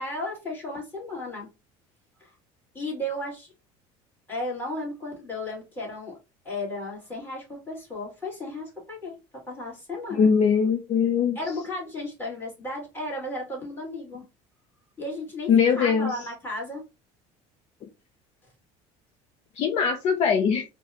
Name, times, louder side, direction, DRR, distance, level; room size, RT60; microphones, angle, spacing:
voice 1, 0.0-1.5 2.2-2.3 2.7-3.5 4.3-6.2 6.4-10.3 11.4-14.2 15.0-16.8, left 1 dB, 15° left, 2.2 m, -34 dB
voice 2, 10.1-11.4 15.5-16.1 19.6-20.6, left 6 dB, 50° left, 0.6 m, -21 dB
4.4 x 2.3 x 2.8 m
cardioid pair, 120°, 14 cm